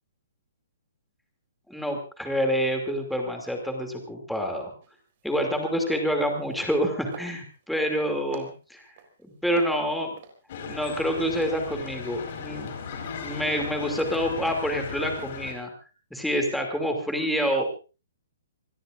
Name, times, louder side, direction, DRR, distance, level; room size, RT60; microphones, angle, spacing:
voice 1, 1.7-4.7 5.2-7.4 7.7-8.8 9.4-10.1 10.6-12.7 13.2-15.7 16.1-17.6, equal, ahead, 2 dB, 2.7 m, -27 dB
sound 1, 4.8-5.0 5.3-5.5 5.9-6.1 6.4-6.8 7.1-7.9 8.3-9.1 9.5-10.8 11.2-11.4, right 6 dB, 35° right, 4.0 m, -44 dB
sound 2, 10.5-15.5, left 6 dB, 40° left, 4.8 m, -36 dB
27.0 x 20.0 x 2.6 m, 0.33 s
hypercardioid pair, 170°, 0 cm